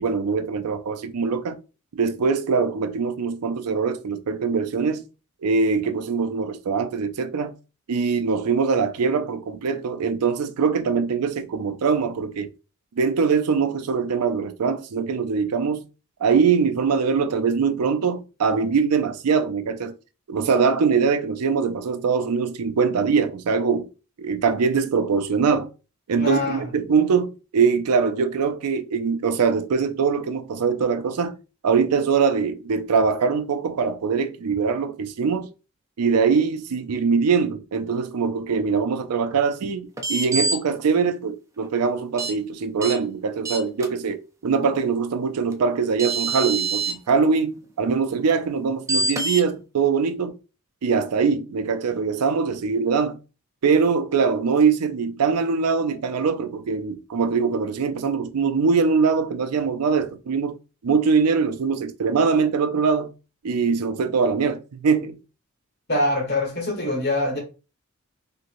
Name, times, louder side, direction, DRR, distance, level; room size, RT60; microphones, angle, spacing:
voice 1, 0.0-1.6 1.9-5.1 5.4-7.5 7.9-12.5 13.0-15.8 16.2-19.9 20.3-23.9 24.2-25.7 26.1-31.3 31.6-35.5 36.0-50.4 50.8-53.2 53.6-60.6 60.8-63.1 63.4-65.2, right 5 dB, 90° right, 0.4 m, -22 dB
voice 2, 26.2-26.6 65.9-67.4, left 1 dB, 45° left, 1.4 m, -24 dB
sound 1, 40.0-40.6 42.2-42.3 42.8-42.9 43.4-43.9 45.5-45.6 46.0-46.9 48.9-49.4, right 3 dB, 15° right, 0.3 m, -25 dB
3.0 x 2.8 x 2.5 m
head